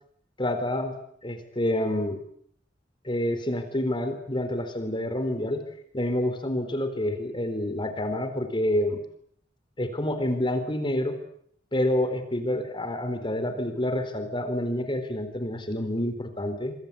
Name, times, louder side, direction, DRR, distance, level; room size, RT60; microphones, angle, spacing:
voice 1, 0.4-1.0 1.2-2.2 3.0-5.6 5.9-9.0 9.8-11.2 11.7-16.7, left 1 dB, 25° left, 9 dB, 4.1 m, -28 dB
26.0 x 25.5 x 8.5 m, 0.67 s
head